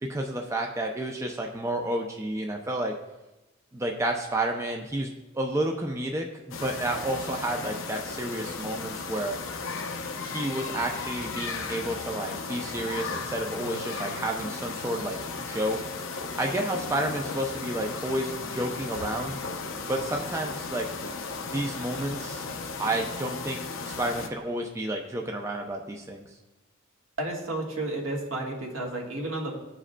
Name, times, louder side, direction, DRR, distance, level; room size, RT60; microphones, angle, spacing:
voice 1, 0.0-2.9 3.7-5.1 5.3-9.4 10.2-15.8 16.3-19.4 19.8-20.9 21.4-22.4 22.8-26.3, right 1 dB, 15° right, 1 dB, 0.4 m, -31 dB
sound 1, 6.5-24.3, left 4 dB, 65° left, 0.6 m, -35 dB
voice 2, 27.2-29.5, right 2 dB, 75° right, -1 dB, 1.6 m, -32 dB
14.0 x 4.9 x 2.2 m, 1.0 s
head